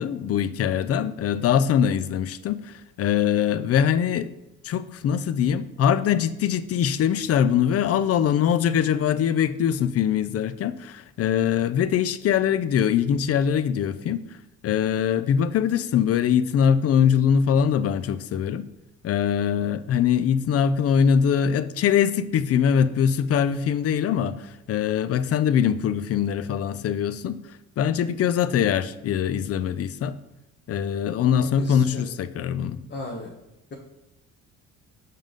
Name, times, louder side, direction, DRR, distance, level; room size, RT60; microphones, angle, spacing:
voice 1, 0.0-4.3 4.6-14.2 14.6-18.7 19.0-27.4 27.8-30.2 30.7-32.8, left 8 dB, 55° left, 0.4 m, -22 dB
voice 2, 31.4-32.0 32.9-33.3, left 2 dB, 35° left, 1.0 m, -35 dB
5.5 x 3.7 x 5.3 m
cardioid pair, 90°, 30 cm